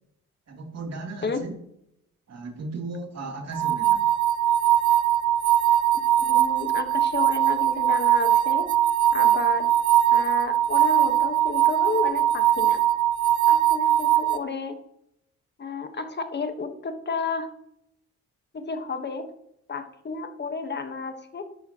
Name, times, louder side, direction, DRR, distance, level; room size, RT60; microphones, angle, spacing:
voice 1, 0.5-1.5 2.3-4.1, right 3 dB, 55° right, 1 dB, 3.3 m, -36 dB
sound 1, 3.5-14.4, right 11 dB, 75° right, 0.8 m, -21 dB
voice 2, 6.2-8.7 9.1-9.7 10.1-12.8 13.5-14.8 15.6-17.5 18.5-19.3 19.7-21.4, left 4 dB, 35° left, 8 dB, 1.5 m, -31 dB
13.5 x 11.5 x 3.1 m, 0.78 s
cardioid pair, 90°, 30 cm